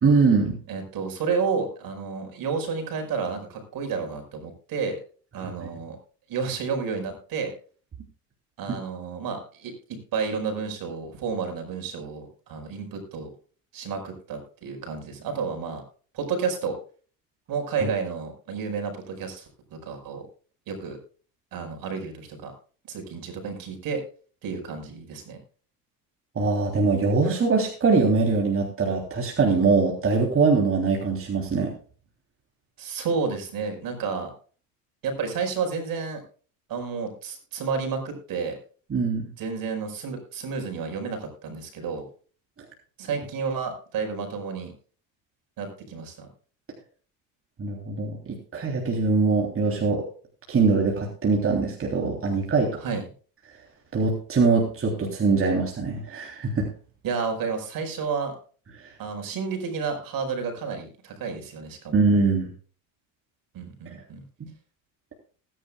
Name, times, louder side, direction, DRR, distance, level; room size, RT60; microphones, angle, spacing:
voice 1, 0.0-0.6 17.8-17.9 26.3-31.7 38.9-39.3 47.6-50.0 50.5-52.8 53.9-56.7 61.9-62.5, right 4 dB, 35° right, 0 dB, 3.3 m, -22 dB
voice 2, 0.7-5.0 5.3-6.0 6.3-7.5 8.6-13.3 13.7-15.8 16.1-16.8 17.5-20.2 20.7-21.0 21.5-22.5 22.9-24.0 24.4-25.4 32.8-34.3 35.0-36.2 36.7-38.6 39.4-42.1 43.0-44.7 45.6-46.3 52.8-53.0 57.0-58.4 59.0-62.0 63.5-64.2, right 5 dB, 60° right, 5 dB, 5.1 m, -31 dB
19.5 x 10.0 x 2.3 m, 0.41 s
supercardioid pair, 85°, 39 cm